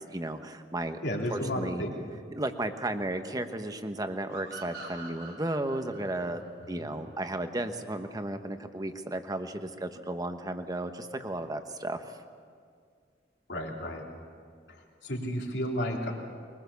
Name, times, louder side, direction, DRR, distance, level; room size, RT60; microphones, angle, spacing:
voice 1, 0.1-1.0 1.3-1.8 2.3-12.0, right 1 dB, 20° right, 7 dB, 1.1 m, -34 dB
voice 2, 1.0-1.9 6.6-6.9 13.5-14.0 14.7-16.1, equal, 75° left, -1 dB, 3.2 m, -33 dB
sound 1, 4.3-7.7, right 3 dB, 75° right, 6.2 m, -46 dB
22.5 x 20.5 x 7.0 m, 2.1 s
head